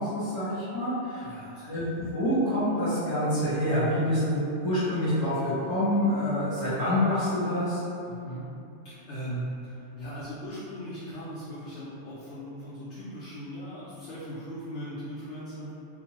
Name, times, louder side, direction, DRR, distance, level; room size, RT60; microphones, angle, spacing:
voice 1, 0.0-1.3 1.6-7.8, left 1 dB, 20° right, -15 dB, 0.8 m, -27 dB
voice 2, 1.2-1.8 8.1-8.4 8.8-15.7, equal, 70° left, -10 dB, 0.9 m, -39 dB
2.8 x 2.1 x 2.9 m, 2.7 s
omnidirectional pair, 1.2 m